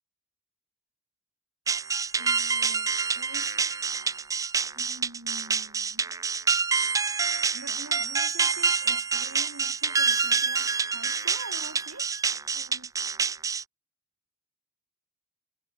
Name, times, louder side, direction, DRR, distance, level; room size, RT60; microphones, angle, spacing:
sound 1, 1.7-13.6, right 5 dB, 15° right, 0.4 m, -27 dB
voice 1, 2.2-3.6 4.7-6.1 7.5-12.1 12.5-12.9, right 2 dB, 70° right, 5.0 m, -46 dB
head